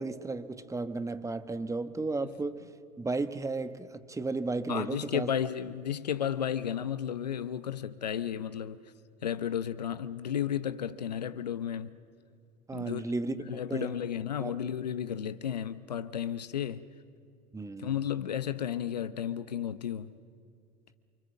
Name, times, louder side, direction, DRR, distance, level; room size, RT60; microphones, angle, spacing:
voice 1, 0.0-2.7 3.0-5.3 12.7-13.4 13.7-13.9 14.4-14.6 17.5-17.9, right 3 dB, 15° right, 1.4 m, -34 dB
voice 2, 4.7-8.8 9.2-12.0 12.7-13.0 13.4-16.9 17.8-20.1, left 9 dB, 90° left, 0.8 m, -33 dB
28.5 x 24.5 x 7.3 m
hypercardioid pair, 75°, 20 cm